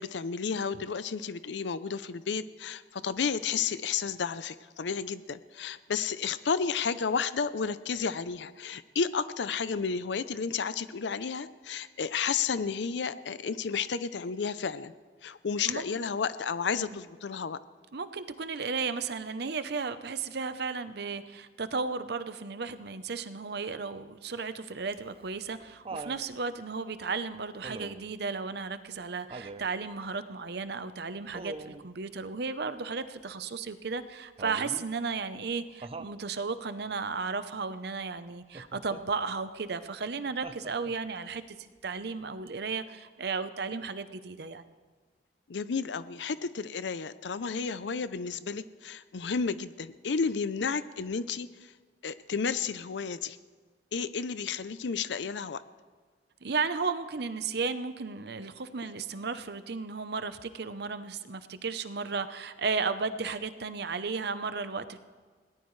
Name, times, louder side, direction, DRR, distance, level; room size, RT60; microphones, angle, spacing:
voice 1, 0.0-14.9 15.2-17.6 45.5-51.7 52.0-53.4 53.9-55.6, left 5 dB, 90° left, 14 dB, 0.5 m, -32 dB
voice 2, 17.9-44.6 56.4-65.0, right 4 dB, 65° right, 12 dB, 0.8 m, -34 dB
Laughter, 24.9-26.2 27.6-28.1 29.3-29.7 31.3-31.9 34.4-34.9 35.8-36.2 38.5-39.0 40.4-41.1 42.5-42.6, right 3 dB, 35° right, 0.6 m, -42 dB
21.5 x 18.0 x 3.2 m, 1.5 s
head